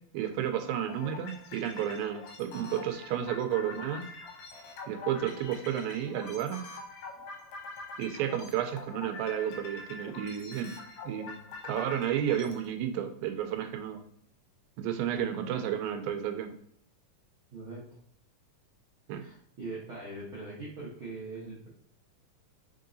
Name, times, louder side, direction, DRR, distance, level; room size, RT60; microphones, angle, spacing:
voice 1, 0.1-4.1 4.9-6.6 8.0-10.7 11.1-14.0 14.8-16.5 19.1-19.2, right 10 dB, 85° right, 7 dB, 2.3 m, -32 dB
sound 1, 0.9-12.7, left 3 dB, 75° left, 2.4 m, -45 dB
voice 2, 17.5-17.8 19.1-21.7, right 2 dB, 55° right, -8 dB, 1.5 m, -42 dB
5.4 x 3.7 x 2.6 m, 0.65 s
omnidirectional pair, 4.1 m